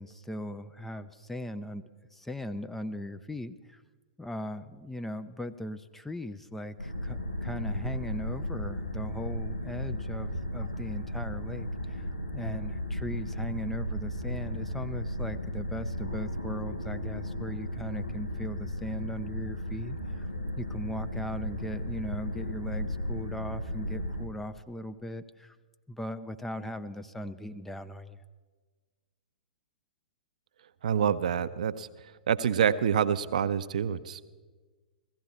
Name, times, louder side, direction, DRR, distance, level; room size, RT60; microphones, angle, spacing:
voice 1, 0.0-1.8 2.1-3.8 4.2-12.0 12.3-20.3 20.6-25.6 25.9-28.2, equal, 5° left, 9 dB, 0.4 m, -39 dB
sound 1, 6.8-24.3, equal, 90° left, 1.2 m, -35 dB
voice 2, 30.8-31.9 32.3-34.2, right 8 dB, 60° right, 13 dB, 0.5 m, -27 dB
16.0 x 15.0 x 4.2 m, 1.4 s
figure-of-eight pair, 110°, 5 cm